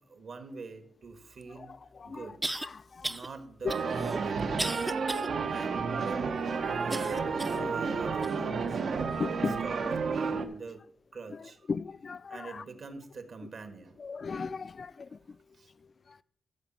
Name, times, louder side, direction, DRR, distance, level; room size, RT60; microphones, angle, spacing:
voice 1, 0.1-1.7 2.0-2.4 3.1-4.5 5.5-8.8 9.2-10.8 11.1-11.7 12.3-14.0 15.1-15.2 15.5-15.7, right 4 dB, 60° right, 1.5 m, -45 dB
sound 1, 1.4-1.5 2.4-2.7 3.0-3.3 3.7-5.3 5.8-5.9 6.9-7.6 8.2-8.3 9.1-9.2, right 1 dB, 10° right, 0.5 m, -35 dB
voice 2, 2.6-3.1 3.6-3.7 7.6-7.7 9.2-9.6 10.3-10.4 11.7-12.6 14.0-15.1, left 5 dB, 45° left, 0.4 m, -35 dB
sound 2, 3.7-10.4, right 5 dB, 80° right, 1.1 m, -31 dB
13.5 x 4.8 x 7.4 m
wide cardioid pair, 145°, 0 cm